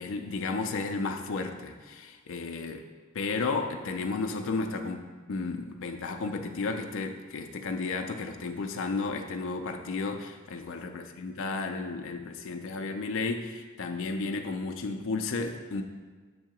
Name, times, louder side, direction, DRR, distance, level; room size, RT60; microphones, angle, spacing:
voice 1, 0.0-2.8 3.1-15.8, left 3 dB, 60° left, 4 dB, 0.4 m, -33 dB
7.6 x 2.8 x 5.9 m, 1.4 s
head